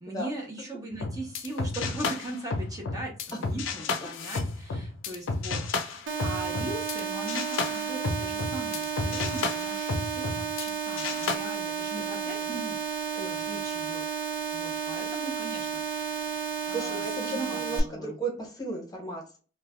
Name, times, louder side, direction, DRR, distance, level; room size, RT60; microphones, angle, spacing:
voice 1, 0.0-14.0 14.5-16.4 16.7-18.2, right 1 dB, 20° right, 0 dB, 0.6 m, -40 dB
sound 1, 0.9-7.0 7.3-10.7 11.0-11.4, left 4 dB, 85° left, 0.4 m, -32 dB
sound 2, 6.1-17.8, right 7 dB, 70° right, 0.5 m, -32 dB
voice 2, 11.9-12.6 13.2-13.4 16.7-19.4, right 2 dB, 20° left, -1 dB, 0.8 m, -36 dB
3.0 x 2.1 x 2.3 m, 0.37 s
head